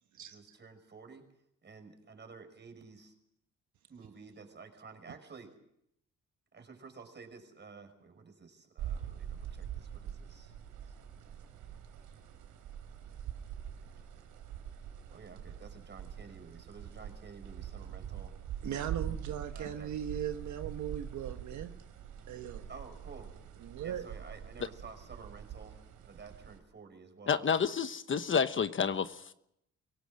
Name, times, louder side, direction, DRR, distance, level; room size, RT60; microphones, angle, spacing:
voice 1, 0.2-1.3 1.6-3.1 3.9-5.5 6.5-10.5 10.8-10.9 11.7-11.8 15.1-18.3 19.5-19.9 22.7-23.3 23.8-27.7, right 5 dB, 35° right, 6 dB, 5.5 m, -52 dB
sound 1, 8.8-26.6, right 9 dB, 85° right, 3.4 m, -44 dB
voice 2, 18.6-21.7 22.3-22.7 23.6-24.1, right 9 dB, 70° right, 7 dB, 1.3 m, -38 dB
voice 3, 27.3-29.3, left 6 dB, 40° left, 11 dB, 1.1 m, -29 dB
24.0 x 17.5 x 7.7 m, 0.77 s
cardioid pair, 90°, 30 cm